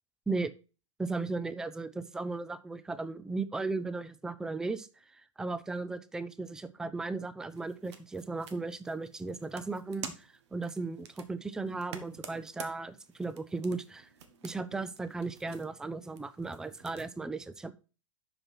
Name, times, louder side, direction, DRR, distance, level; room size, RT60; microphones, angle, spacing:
voice 1, 1.0-4.9 5.1-14.1 14.4-17.7, right 3 dB, 5° right, 14 dB, 0.4 m, -36 dB
sound 1, 7.5-17.1, right 7 dB, 55° right, 1.3 m, -50 dB
7.6 x 5.9 x 4.4 m, 0.33 s
figure-of-eight pair, 110°, 17 cm